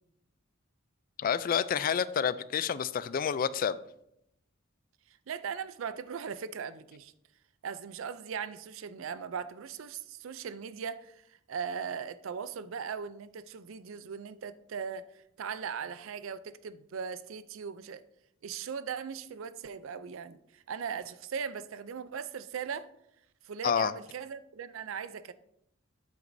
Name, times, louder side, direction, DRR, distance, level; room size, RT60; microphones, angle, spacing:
voice 1, 1.2-3.8 23.6-23.9, left 7 dB, 45° left, 0.3 m, -29 dB
voice 2, 5.3-7.1 7.6-18.0 18.4-22.9 23.4-25.3, right 6 dB, 75° right, 0.4 m, -39 dB
9.2 x 8.0 x 2.6 m
head